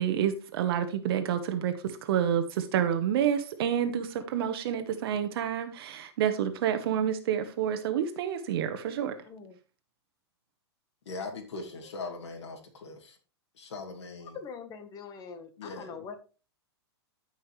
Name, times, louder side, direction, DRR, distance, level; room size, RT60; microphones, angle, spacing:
voice 1, 0.0-9.1, right 9 dB, 60° right, 1.2 m, -29 dB
voice 2, 9.2-9.6 14.3-16.2, left 6 dB, 25° left, 1.4 m, -43 dB
voice 3, 11.1-13.2 13.5-14.4 15.6-16.0, left 3 dB, 80° left, 2.4 m, -40 dB
14.5 x 5.6 x 3.3 m
hypercardioid pair, 135°, 14 cm